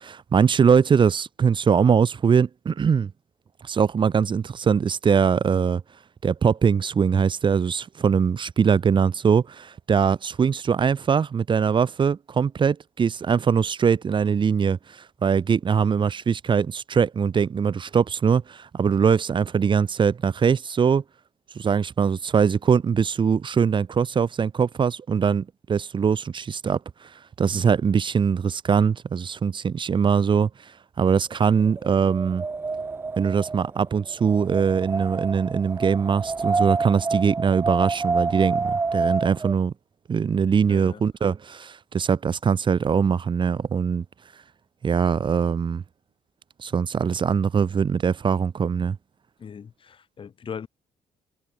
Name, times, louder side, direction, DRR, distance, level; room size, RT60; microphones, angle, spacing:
voice 1, 0.0-3.1 3.6-5.8 6.2-21.0 21.6-27.1 27.4-30.5 31.0-32.4 33.2-39.7 40.1-44.0 44.8-45.8 46.6-49.0, right 6 dB, 40° right, 2.0 m, -22 dB
Wind, 31.6-39.5, right 4 dB, 20° right, 0.4 m, -28 dB
voice 2, 40.7-41.0 49.4-50.7, left 7 dB, 45° left, 3.3 m, -39 dB
cardioid pair, 95°, 12 cm